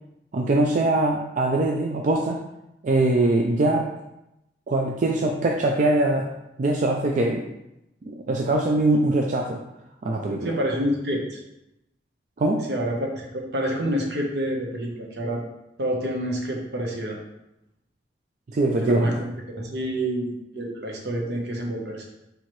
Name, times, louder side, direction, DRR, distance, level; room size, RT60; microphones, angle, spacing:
voice 1, 0.3-2.4 2.8-3.9 4.7-6.3 6.6-7.4 8.1-9.6 10.0-10.5 12.4-12.6 18.5-19.1, right 2 dB, 45° right, 1 dB, 0.4 m, -22 dB
voice 2, 10.4-11.4 12.7-15.4 15.8-17.2 18.8-19.1 19.5-22.1, equal, 70° right, 0 dB, 0.9 m, -27 dB
4.4 x 3.7 x 3.1 m, 0.88 s
head